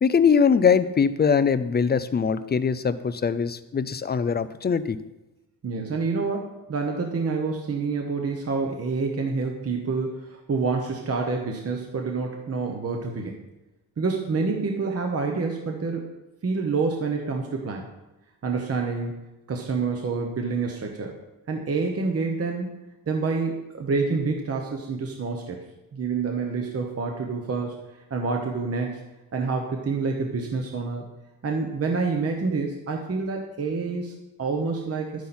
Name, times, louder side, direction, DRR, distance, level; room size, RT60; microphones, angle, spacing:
voice 1, 0.0-5.0, left 6 dB, 25° left, 13 dB, 0.4 m, -22 dB
voice 2, 5.6-13.4 14.0-16.1 16.4-17.9 18.4-19.2 19.5-21.2 21.5-22.8 23.1-25.6 25.9-27.8 28.1-29.0 29.3-31.1 31.4-35.3, right 4 dB, 35° right, 2 dB, 1.0 m, -27 dB
11.0 x 9.3 x 4.3 m, 1.0 s
wide cardioid pair, 165°, 40 cm